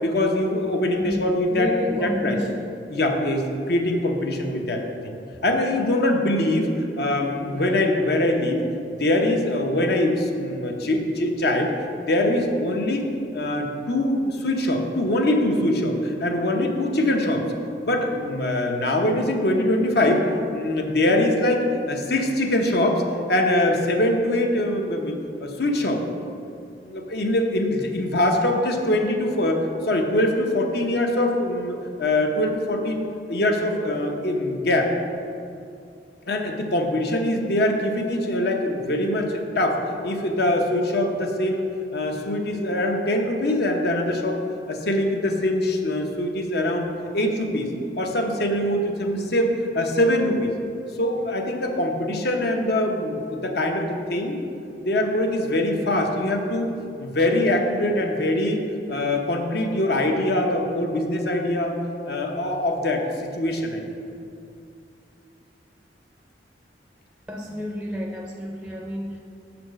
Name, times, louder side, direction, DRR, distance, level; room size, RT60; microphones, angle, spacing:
voice 1, 0.0-1.7 2.0-2.4 2.9-5.2 5.4-8.6 9.0-11.7 12.1-13.1 13.3-17.4 17.8-20.3 20.5-23.0 23.3-25.1 25.4-26.0 26.8-34.9 36.3-41.7 41.9-44.4 44.7-47.7 48.0-50.5 51.0-54.4 54.8-56.7 57.0-58.6 58.9-61.8 62.1-63.8, left 1 dB, 60° left, 3 dB, 0.8 m, -23 dB
voice 2, 1.0-2.6 67.3-69.2, left 1 dB, 5° right, 0 dB, 0.5 m, -30 dB
6.9 x 4.3 x 6.3 m, 2.5 s
head